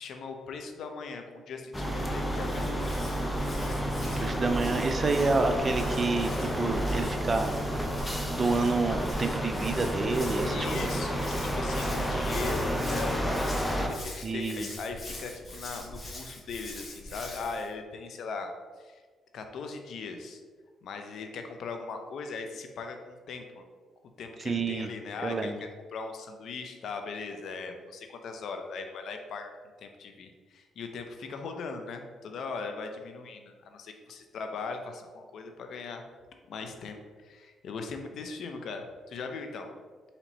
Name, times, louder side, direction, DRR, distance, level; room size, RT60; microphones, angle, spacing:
voice 1, 0.0-2.7 10.4-18.5 18.8-19.0 19.3-20.4 20.8-23.6 24.2-29.5 29.8-36.0 36.5-39.7, left 4 dB, 70° left, 5 dB, 0.6 m, -39 dB
sound 1, 1.7-13.9, equal, 10° left, 0.7 m, -30 dB
Hands, 2.3-17.7, left 1 dB, 30° left, 1.1 m, -43 dB
voice 2, 4.2-7.5 8.3-10.9 14.2-14.7 24.4-24.9 25.2-25.6, right 3 dB, 35° right, 7 dB, 0.4 m, -28 dB
4.3 x 2.8 x 4.1 m, 1.5 s
cardioid pair, 90°, 0 cm